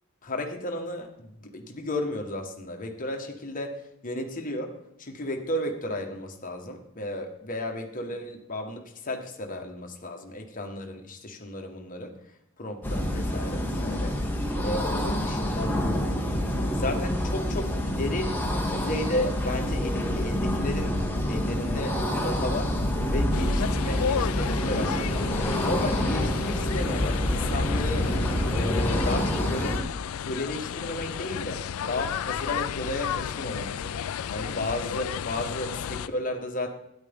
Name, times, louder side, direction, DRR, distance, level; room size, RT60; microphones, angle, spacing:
voice 1, 0.2-12.1 12.6-14.2 14.6-15.7 16.7-18.3 18.7-20.9 21.3-22.7 23.1-25.3 25.6-28.1 28.5-29.8 30.2-33.9 34.3-36.7, left 1 dB, 40° left, 3 dB, 1.3 m, -33 dB
sound 1, 12.8-29.8, equal, 10° left, 1.4 m, -28 dB
sound 2, 20.0-24.3 24.8-25.6 26.3-30.5 32.7-33.2, equal, 45° right, 1.6 m, -34 dB
sound 3, 23.3-36.1, left 8 dB, 75° left, 0.3 m, -33 dB
12.5 x 9.9 x 3.5 m, 0.76 s
head